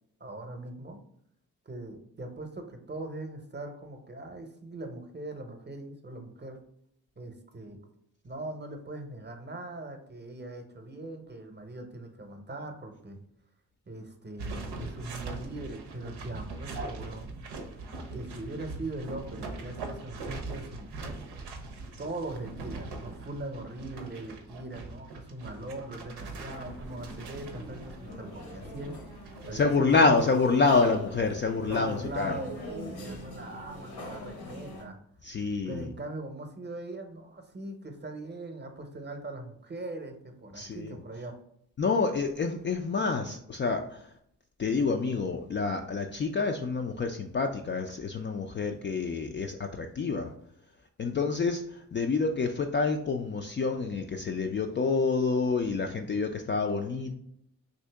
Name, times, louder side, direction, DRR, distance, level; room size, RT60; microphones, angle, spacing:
voice 1, 0.2-1.0 1.7-6.6 7.2-7.8 8.2-13.2 13.9-17.3 17.7-17.8 18.1-21.2 22.0-29.0 29.3-30.5 31.7-35.0 35.4-41.4, right 2 dB, 25° right, 5 dB, 0.8 m, -41 dB
sound 1, 14.4-29.6, right 3 dB, 85° right, 0.6 m, -41 dB
sound 2, 26.4-34.8, left 1 dB, 75° left, 1.0 m, -43 dB
voice 2, 29.5-32.4 35.2-35.9 40.6-41.0 41.8-44.0 44.6-50.3 51.0-57.1, left 4 dB, 30° left, 4 dB, 0.4 m, -27 dB
2.8 x 2.7 x 3.3 m, 0.71 s
supercardioid pair, 45°, 39 cm